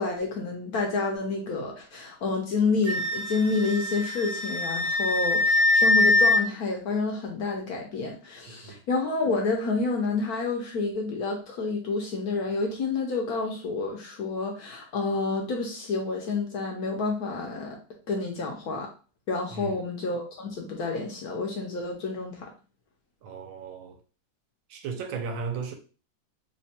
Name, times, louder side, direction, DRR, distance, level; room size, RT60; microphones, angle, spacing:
voice 1, 0.0-17.8 18.1-18.9 19.3-22.5, left 3 dB, 65° left, 1.0 m, -29 dB
Wind instrument woodwind instrument, 2.9-6.4, left 2 dB, 65° right, 1.0 m, -23 dB
voice 2, 8.5-8.8 19.5-19.8 23.2-24.0 24.7-25.7, right 5 dB, 80° right, 1.4 m, -35 dB
3.3 x 2.2 x 4.2 m
omnidirectional pair, 2.1 m